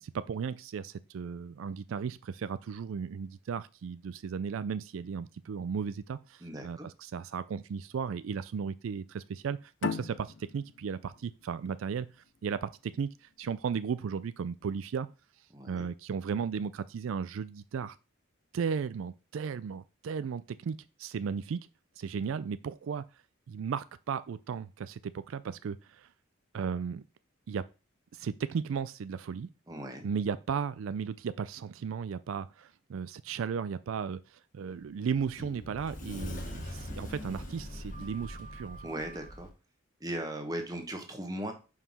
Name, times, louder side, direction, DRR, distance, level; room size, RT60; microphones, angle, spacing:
voice 1, 0.0-12.1 12.4-15.1 15.7-18.0 18.5-21.6 22.0-23.0 23.5-26.1 26.5-27.0 27.5-27.7 28.1-29.5 30.0-38.9, right 6 dB, 80° right, 0.4 m, -35 dB
voice 2, 6.4-6.9 15.5-15.9 29.7-30.1 38.8-39.5 40.0-41.5, right 1 dB, 20° right, 1.2 m, -38 dB
sound 1, 9.8-13.0, left 5 dB, 60° left, 0.5 m, -38 dB
Sliding door, 34.7-39.5, left 1 dB, 40° left, 1.5 m, -42 dB
5.6 x 4.7 x 5.4 m
head